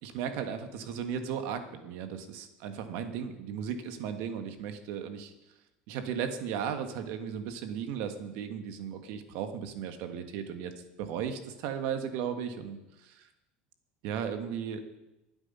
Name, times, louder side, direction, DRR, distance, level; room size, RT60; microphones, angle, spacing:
voice 1, 0.0-5.3 5.9-10.7 11.0-13.3 14.0-14.8, right 8 dB, 60° right, 7 dB, 1.6 m, -36 dB
22.0 x 8.1 x 5.6 m, 0.95 s
cardioid pair, 170°, 4 cm